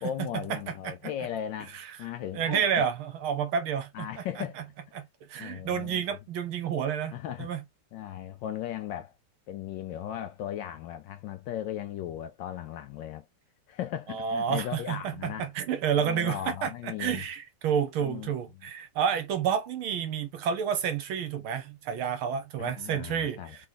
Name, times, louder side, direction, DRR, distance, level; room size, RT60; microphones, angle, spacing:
voice 1, 0.0-2.8 3.9-4.6 5.4-6.0 7.1-7.5 7.9-9.1 9.5-13.3 13.7-15.5 15.9-17.2 18.0-18.3 22.6-23.6, left 10 dB, 75° left, 1.1 m, -37 dB
voice 2, 2.3-3.9 4.9-5.0 5.3-7.1 7.4-7.6 14.1-15.1 15.5-16.7 17.0-23.4, right 8 dB, 70° right, 1.8 m, -29 dB
3.9 x 3.3 x 3.9 m
omnidirectional pair, 2.4 m